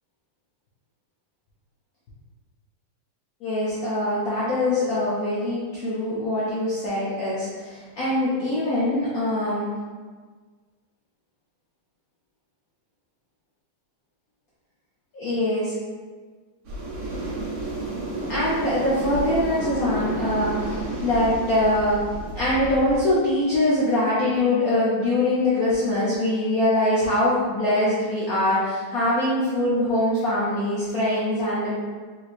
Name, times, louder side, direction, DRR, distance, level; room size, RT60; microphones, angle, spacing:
voice 1, 3.4-9.6 15.1-15.8 18.3-22.0 22.4-31.8, left 1 dB, 80° left, -9 dB, 0.8 m, -23 dB
sound 1, 16.7-23.0, right 2 dB, 60° right, 0.8 m, -31 dB
3.4 x 3.2 x 2.4 m, 1.5 s
omnidirectional pair, 2.4 m